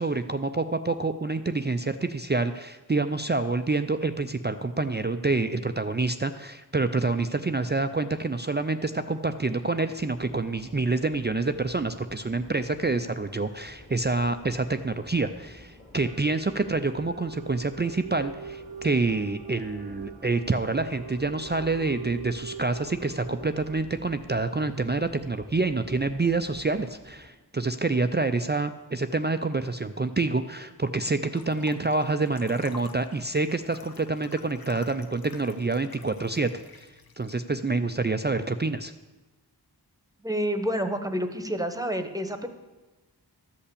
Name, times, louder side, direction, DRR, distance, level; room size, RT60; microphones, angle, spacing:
voice 1, 0.0-36.9 37.2-38.9, right 3 dB, 25° right, 8 dB, 0.4 m, -27 dB
Subway metro underground, 10.0-27.3, left 1 dB, 30° left, 2.2 m, -50 dB
sound 1, 16.0-23.8, right 6 dB, 90° right, 0.8 m, -43 dB
sound 2, 31.3-37.4, left 4 dB, 60° left, 0.9 m, -50 dB
voice 2, 40.2-42.5, equal, 10° right, 8 dB, 1.1 m, -28 dB
13.0 x 5.6 x 8.3 m, 1.2 s
wide cardioid pair, 55°, 41 cm